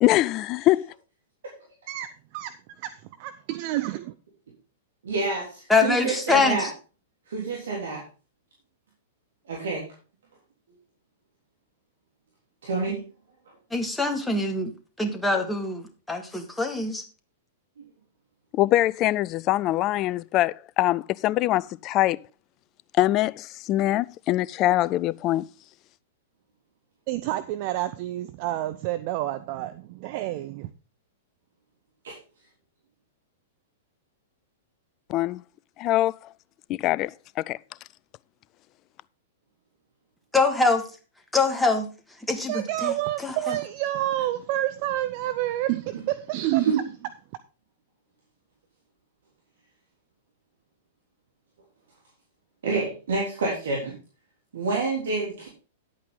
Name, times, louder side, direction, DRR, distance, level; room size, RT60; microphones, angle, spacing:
voice 1, 0.0-0.9 18.5-22.2 22.9-25.5 35.1-35.4 35.8-36.2 36.7-37.6, left 15 dB, 35° left, 0.4 m, -23 dB
voice 2, 3.2-4.1 27.1-30.7 42.5-46.8, right 14 dB, 45° right, 0.6 m, -28 dB
voice 3, 5.0-6.7 7.3-8.0 9.5-9.8 12.6-13.0 17.8-17.9 32.0-32.1 46.6-46.8 52.6-53.9 54.5-55.5, right 3 dB, 65° right, 3.5 m, -28 dB
voice 4, 5.7-6.7 13.7-14.7 15.0-17.0 40.3-40.8 41.3-41.9 42.3-42.9 43.2-43.6, left 3 dB, 5° left, 1.8 m, -24 dB
10.5 x 8.4 x 3.8 m
figure-of-eight pair, 105°, 0 cm